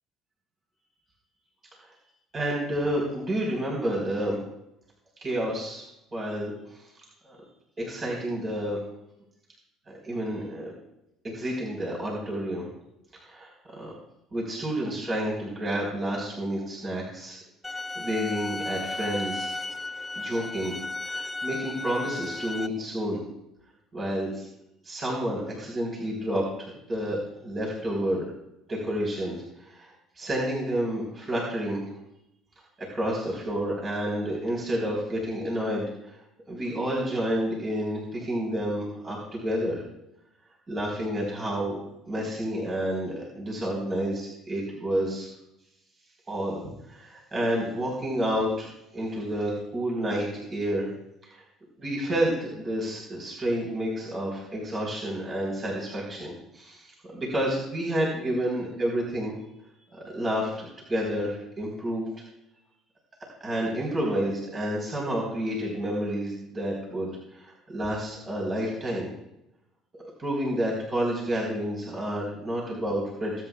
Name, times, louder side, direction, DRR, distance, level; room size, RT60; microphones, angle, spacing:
voice 1, 2.3-4.4 5.2-5.8 6.1-6.8 7.2-7.4 7.8-8.8 9.9-10.7 11.2-12.6 13.1-13.9 14.3-17.4 17.7-19.5 20.2-20.8 21.0-23.2 23.9-24.5 24.8-28.2 28.7-31.8 32.8-36.2 36.5-39.8 40.7-41.8 42.1-45.3 46.3-46.6 46.9-50.9 51.2-51.4 51.8-59.3 59.9-62.2 63.4-69.1 69.9-73.3, equal, 35° right, -3 dB, 4.5 m, -30 dB
sound 1, 17.6-22.7, left 2 dB, 10° left, 1.2 m, -34 dB
22.0 x 9.6 x 2.5 m, 0.84 s
hypercardioid pair, 60°, 0 cm